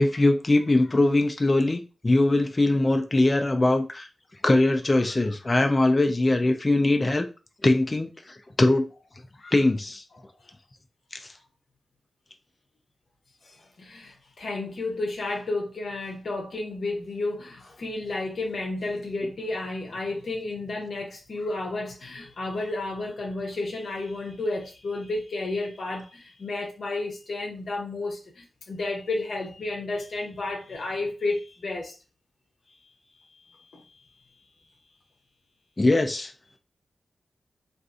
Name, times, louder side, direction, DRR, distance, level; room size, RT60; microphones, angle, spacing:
voice 1, 0.0-4.1 4.4-7.3 7.6-8.1 8.6-8.9 9.5-10.0 11.1-11.3 35.8-36.3, left 2 dB, 25° left, 0.3 m, -21 dB
voice 2, 13.4-31.9 33.1-33.2 33.7-33.9, left 2 dB, 70° left, 0.7 m, -32 dB
2.6 x 2.4 x 2.4 m
wide cardioid pair, 105°, 0 cm